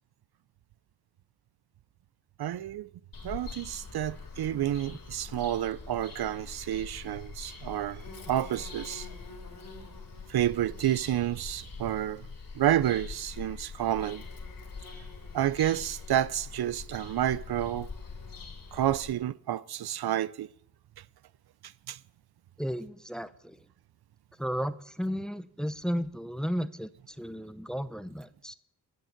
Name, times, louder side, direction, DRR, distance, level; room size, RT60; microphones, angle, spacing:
voice 1, 2.4-2.9 3.2-9.1 10.3-12.3 12.5-14.2 15.3-17.9 18.7-20.5 21.6-22.0, right 12 dB, 80° right, 0.5 m, -30 dB
Bird vocalization bird call bird song, 3.1-19.1, left 4 dB, 60° left, 3.2 m, -44 dB
voice 2, 22.6-23.6 24.4-28.5, equal, ahead, 0.8 m, -34 dB
13.5 x 6.4 x 9.5 m
cardioid pair, 65°, 38 cm